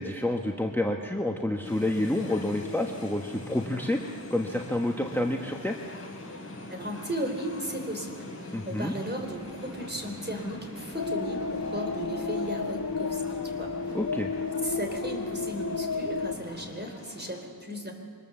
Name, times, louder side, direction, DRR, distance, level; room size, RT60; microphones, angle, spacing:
voice 1, 0.0-4.0 4.3-5.8 8.5-8.9 13.9-14.3, left 1 dB, 5° left, 2 dB, 1.3 m, -29 dB
sound 1, 1.6-17.4, left 2 dB, 35° left, 6.6 m, -43 dB
voice 2, 6.7-13.7 14.6-17.9, right 1 dB, 30° right, 3 dB, 3.8 m, -36 dB
sound 2, 9.2-16.7, right 1 dB, 70° right, 3.4 m, -50 dB
sound 3, 11.0-16.4, left 4 dB, 65° left, 1.2 m, -32 dB
24.0 x 20.5 x 7.2 m, 2.3 s
wide cardioid pair, 70°, 36 cm